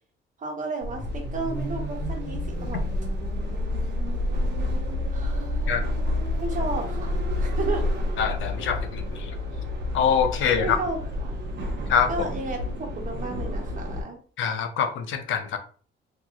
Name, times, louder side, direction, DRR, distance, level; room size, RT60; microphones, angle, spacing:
voice 1, 0.4-2.8 5.1-5.7 6.4-7.9 10.6-11.0 12.1-14.2, right 3 dB, 40° right, 1 dB, 1.1 m, -33 dB
sound 1, 0.8-14.0, left 1 dB, 60° right, 0.8 m, -29 dB
voice 2, 8.2-9.3 9.9-10.8 11.9-12.1 14.4-15.6, left 7 dB, 75° left, 8 dB, 0.5 m, -24 dB
3.0 x 2.8 x 2.4 m, 0.42 s
cardioid pair, 90°, 20 cm